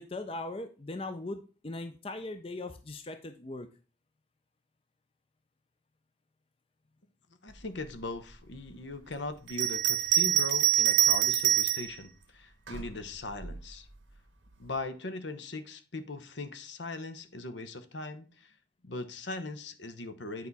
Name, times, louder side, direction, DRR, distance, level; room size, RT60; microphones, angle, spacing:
voice 1, 0.0-3.7, left 2 dB, 30° left, 0.5 m, -39 dB
voice 2, 7.4-13.9 14.6-18.5 18.8-20.5, left 2 dB, 70° left, 1.0 m, -40 dB
Bell, 9.5-11.9 12.7-13.6, right 11 dB, 90° right, 1.2 m, -25 dB
9.3 x 4.7 x 4.1 m
head